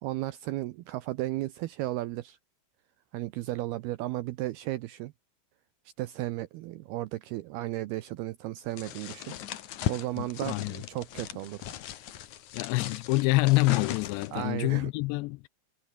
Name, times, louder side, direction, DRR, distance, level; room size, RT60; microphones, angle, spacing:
voice 1, 0.0-2.4 3.1-5.1 6.0-9.3 9.9-11.7 14.3-14.9, right 16 dB, 80° right, 2.2 m, -34 dB
sound 1, 8.8-14.5, left 11 dB, 65° left, 1.9 m, -37 dB
voice 2, 10.2-10.8 12.5-15.5, left 23 dB, 85° left, 2.6 m, -26 dB
omnidirectional pair, 5.4 m